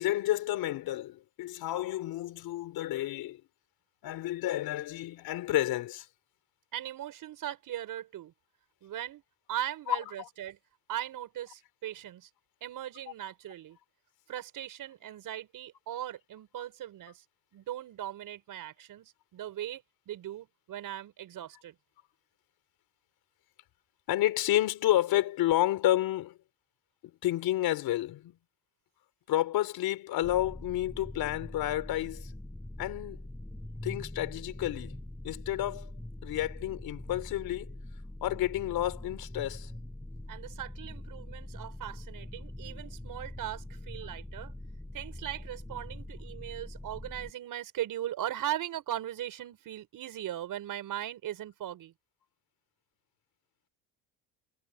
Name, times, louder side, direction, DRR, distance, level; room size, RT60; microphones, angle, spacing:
voice 1, 0.0-3.4 4.0-6.1 9.9-10.3 16.6-16.7 24.1-26.4 27.2-28.4 29.3-32.3 32.8-33.2 33.8-35.9 36.2-37.7 38.2-39.7, left 14 dB, 70° left, 3.9 m, -30 dB
voice 2, 6.7-8.3 8.8-9.2 9.5-10.6 10.9-12.3 12.6-13.8 14.3-17.2 17.5-21.8 40.3-44.5 44.9-51.9, right 12 dB, 60° right, 6.4 m, -39 dB
sound 1, 30.2-47.3, left 1 dB, 5° left, 5.1 m, -43 dB
cardioid pair, 145°, 38 cm